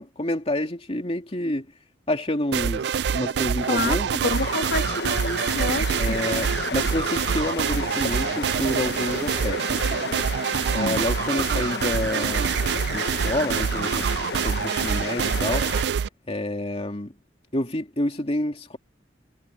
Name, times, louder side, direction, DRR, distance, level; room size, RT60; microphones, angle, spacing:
voice 1, 0.0-1.7 2.1-4.1 6.0-10.0 10.7-12.5 12.9-15.7 16.3-17.1 17.5-18.8, left 1 dB, 35° left, 2.6 m, -28 dB
sound 1, 2.5-16.1, right 7 dB, 65° right, 0.3 m, -26 dB
voice 2, 3.6-6.2 10.7-11.0, left 2 dB, 90° left, 2.4 m, -28 dB
sound 2, 4.3-15.8, left 5 dB, 65° left, 0.9 m, -33 dB
head